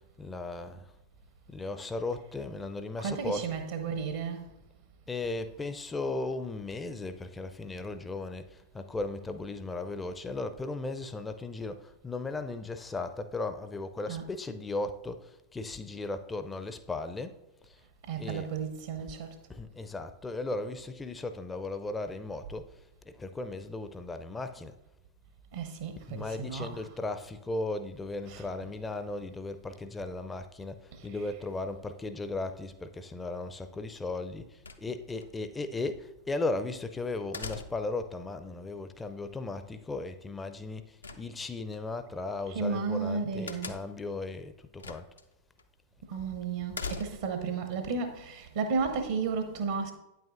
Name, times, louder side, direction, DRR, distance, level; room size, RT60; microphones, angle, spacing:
voice 1, 0.2-0.9 1.5-3.5 5.1-17.4 17.6-17.8 18.2-18.5 19.0-19.1 19.5-22.7 23.1-24.8 26.1-45.1, left 2 dB, 15° left, 0.4 m, -36 dB
voice 2, 3.0-4.4 14.1-14.3 18.1-19.4 25.5-26.9 28.3-28.5 30.9-31.4 42.5-43.8 46.1-49.9, right 5 dB, 60° right, 0.7 m, -33 dB
sound 1, 34.6-35.3 37.3-38.0 41.0-41.8 43.5-44.1 44.8-45.2 45.6-45.7 46.7-47.4, left 4 dB, 75° left, 0.5 m, -41 dB
8.9 x 8.2 x 2.5 m
figure-of-eight pair, 90°, 0 cm